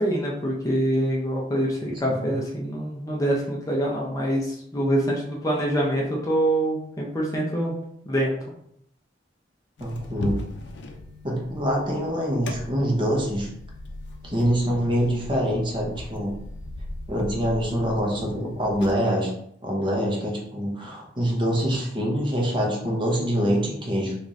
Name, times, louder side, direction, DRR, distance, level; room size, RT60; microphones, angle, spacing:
voice 1, 0.0-7.7 8.1-8.3, right 1 dB, 20° left, -3 dB, 0.6 m, -25 dB
sound 1, 9.8-18.9, left 1 dB, 75° left, 0.5 m, -38 dB
voice 2, 9.8-10.4 11.2-13.5 14.2-16.3 17.1-19.3 19.6-24.1, equal, 25° right, -2 dB, 0.8 m, -25 dB
3.8 x 2.5 x 3.1 m, 0.71 s
head